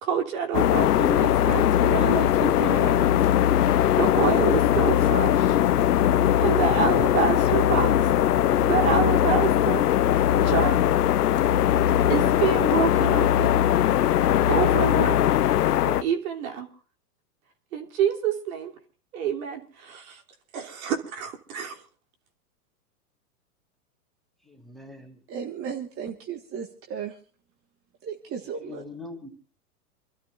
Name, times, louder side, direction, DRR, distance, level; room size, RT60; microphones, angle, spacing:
voice 1, 0.0-3.2 3.5-5.6 6.4-8.0 8.7-9.8 10.3-10.8 12.1-13.5 14.1-15.2 15.8-16.7 17.7-18.7 19.1-20.2 20.5-21.8, right 7 dB, 65° right, 2 dB, 3.2 m, -28 dB
sound 1, 0.5-16.0, left 11 dB, 80° left, 0.8 m, -20 dB
voice 2, 24.5-25.2 28.6-29.3, left 3 dB, ahead, 4 dB, 2.6 m, -42 dB
voice 3, 25.3-27.2 28.0-28.8, right 7 dB, 30° right, 3 dB, 1.7 m, -35 dB
28.0 x 13.0 x 2.6 m, 0.41 s
hypercardioid pair, 115°, 45 cm